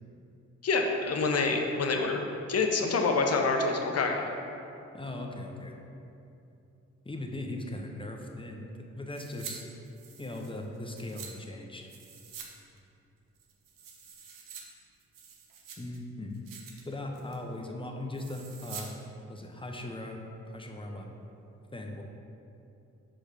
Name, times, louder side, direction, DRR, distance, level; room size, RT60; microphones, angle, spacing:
voice 1, 0.6-2.2 2.5-4.3, left 3 dB, 50° left, 3 dB, 0.8 m, -27 dB
voice 2, 4.9-5.7 7.0-8.7 8.9-9.7 10.2-11.9 15.8-16.3 16.8-18.9 19.3-20.2 20.5-21.1 21.7-22.0, left 1 dB, 15° left, 2 dB, 0.9 m, -39 dB
sound 1, 9.1-9.5 9.8-11.3 11.9-12.5 12.8-12.9 13.4-14.6 15.0-16.0 16.3-16.8 17.1-17.5 18.1-18.9 19.2-19.3, right 7 dB, 75° right, 0.8 m, -46 dB
5.0 x 4.9 x 4.4 m, 2.7 s
supercardioid pair, 40°, 33 cm